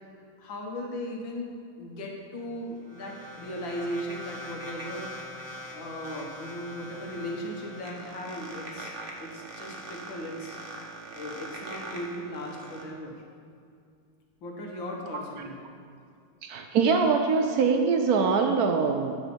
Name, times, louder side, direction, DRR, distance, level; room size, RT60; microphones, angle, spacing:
voice 1, 0.4-5.1 5.7-8.9 9.2-10.6 11.1-13.2 14.4-15.6, equal, 65° left, 0 dB, 2.0 m, -37 dB
sound 1, 2.4-12.8, right 1 dB, 35° right, 1.0 m, -42 dB
voice 2, 16.4-19.1, right 5 dB, 85° right, 5 dB, 0.8 m, -23 dB
10.0 x 6.3 x 5.1 m, 2.3 s
omnidirectional pair, 2.3 m